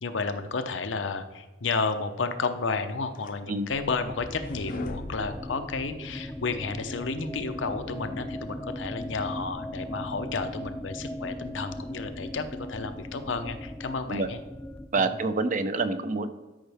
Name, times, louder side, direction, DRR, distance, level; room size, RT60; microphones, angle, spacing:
voice 1, 0.0-14.4 15.0-15.2, left 4 dB, 90° left, 8 dB, 0.7 m, -32 dB
sound 1, 2.7-6.3, left 2 dB, 50° left, 0.6 m, -40 dB
sound 2, 4.1-14.9, left 1 dB, 10° left, 0.3 m, -38 dB
voice 2, 14.9-16.3, right 3 dB, 45° right, 11 dB, 0.6 m, -27 dB
12.5 x 5.6 x 3.5 m, 1.2 s
head